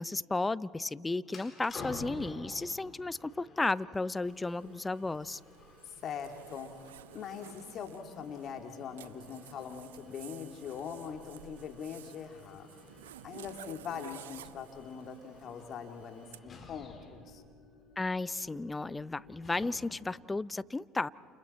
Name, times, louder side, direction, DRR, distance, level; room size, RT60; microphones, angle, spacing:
voice 1, 0.0-5.4 18.0-21.1, left 3 dB, 15° left, 19 dB, 0.6 m, -34 dB
sound 1, 1.2-20.2, left 3 dB, 35° left, 4.4 m, -52 dB
Zipper (clothing), 4.2-16.4, right 12 dB, 85° right, 0.5 m, -53 dB
voice 2, 5.8-6.7 7.1-12.7 13.2-17.4, left 7 dB, 50° left, 5 dB, 2.5 m, -42 dB
29.5 x 29.0 x 4.3 m, 2.1 s
hypercardioid pair, 75°, 0 cm